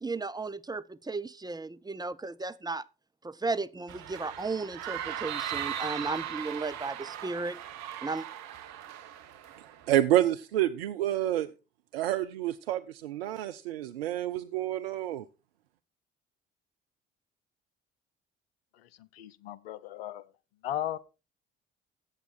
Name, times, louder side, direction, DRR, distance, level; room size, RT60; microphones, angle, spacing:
voice 1, 0.0-2.9 3.2-7.6 8.0-8.3, right 3 dB, 15° right, 0.7 m, -35 dB
sound 1, 3.9-9.9, right 10 dB, 65° right, 1.2 m, -38 dB
voice 2, 9.9-11.5 11.9-15.2, right 13 dB, 85° right, 0.5 m, -28 dB
voice 3, 18.8-20.2 20.6-21.0, left 11 dB, 80° left, 0.7 m, -36 dB
14.0 x 8.2 x 4.2 m
figure-of-eight pair, 50°, 29 cm